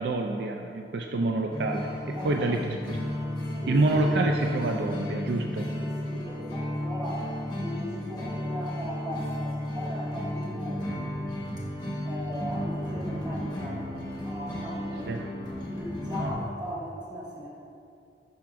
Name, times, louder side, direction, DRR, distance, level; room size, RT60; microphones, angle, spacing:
voice 1, 0.0-3.0 3.7-5.7 11.6-11.7 15.1-15.2, right 2 dB, 65° right, 3 dB, 0.4 m, -27 dB
sound 1, 1.5-16.3, left 1 dB, 25° left, 1.6 m, -33 dB
voice 2, 2.1-2.5 3.4-4.1 5.7-10.9 12.0-13.9 14.2-15.2 15.7-17.5, equal, 25° right, -7 dB, 1.8 m, -38 dB
11.5 x 5.7 x 2.5 m, 2.5 s
head